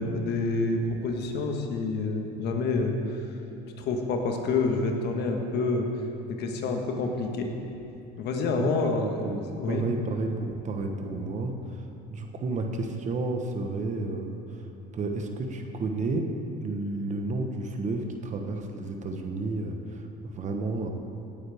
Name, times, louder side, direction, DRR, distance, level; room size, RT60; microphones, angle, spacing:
voice 1, 0.0-2.9 3.8-5.9 6.3-7.5 8.2-9.0 9.6-9.8, left 3 dB, 65° left, 3 dB, 1.5 m, -28 dB
voice 2, 8.6-14.7 14.9-16.3 16.6-20.9, right 2 dB, 40° right, 4 dB, 1.2 m, -32 dB
18.0 x 9.0 x 3.6 m, 2.8 s
cardioid pair, 115°, 19 cm